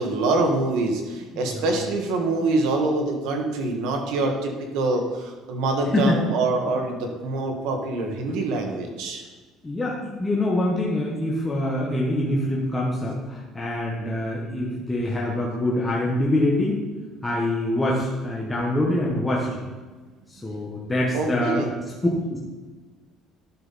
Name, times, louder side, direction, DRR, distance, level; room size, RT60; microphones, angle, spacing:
voice 1, 0.0-9.2 21.1-21.7, right 2 dB, 75° right, 3 dB, 1.6 m, -25 dB
voice 2, 1.3-1.9 5.8-6.7 9.6-16.8 17.2-19.6 20.3-21.7 22.3-22.4, left 1 dB, 10° left, -4 dB, 1.2 m, -25 dB
11.5 x 5.8 x 4.1 m, 1.3 s
cardioid pair, 165°, 0 cm